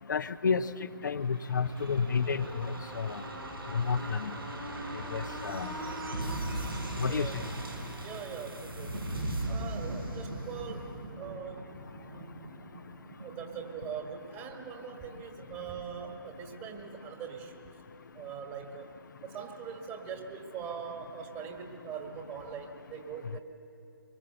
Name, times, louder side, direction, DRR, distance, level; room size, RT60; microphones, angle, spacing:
voice 1, 0.1-0.7 1.0-3.2 3.7-4.3 5.1-5.7 7.0-7.3, left 5 dB, 55° left, 11 dB, 0.6 m, -30 dB
sound 1, 1.1-14.6 14.9-15.0, right 1 dB, 80° right, 4.5 m, -39 dB
voice 2, 7.0-7.4 8.0-9.0 9.5-10.9 11.2-11.6 13.2-17.7 18.1-18.9 19.2-23.4, right 7 dB, 20° right, 4 dB, 1.8 m, -42 dB
24.0 x 22.5 x 6.9 m, 2.5 s
figure-of-eight pair, 130°, 12 cm